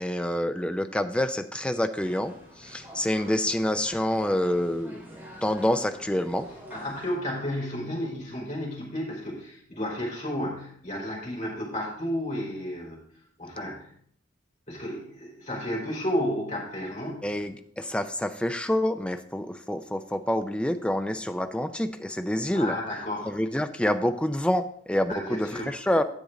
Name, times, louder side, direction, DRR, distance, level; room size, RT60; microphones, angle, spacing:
voice 1, 0.0-2.3 2.6-5.0 5.4-6.5 17.2-22.7 23.3-26.0, left 1 dB, 5° left, 8 dB, 0.5 m, -27 dB
sound 1, 2.0-7.1, equal, 10° right, 3.3 m, -47 dB
voice 2, 6.7-13.0 13.4-13.9 14.7-17.3 22.5-23.4 25.1-25.8, equal, 35° left, -4 dB, 4.2 m, -32 dB
10.0 x 7.7 x 3.8 m, 0.63 s
head